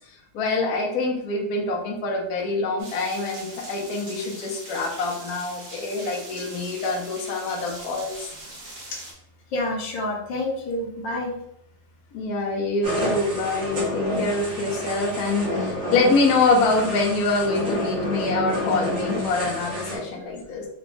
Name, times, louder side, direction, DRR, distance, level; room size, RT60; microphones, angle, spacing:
voice 1, 0.3-8.3 12.1-20.7, left 3 dB, 60° left, 0 dB, 1.1 m, -25 dB
sound 1, 2.8-9.1, right 1 dB, 50° right, 1.4 m, -41 dB
voice 2, 9.5-11.3 20.3-20.5, left 1 dB, 75° left, 0 dB, 1.5 m, -29 dB
sound 2, 12.8-20.0, left 1 dB, 70° right, 2.3 m, -29 dB
5.0 x 2.3 x 3.3 m, 0.73 s
omnidirectional pair, 2.1 m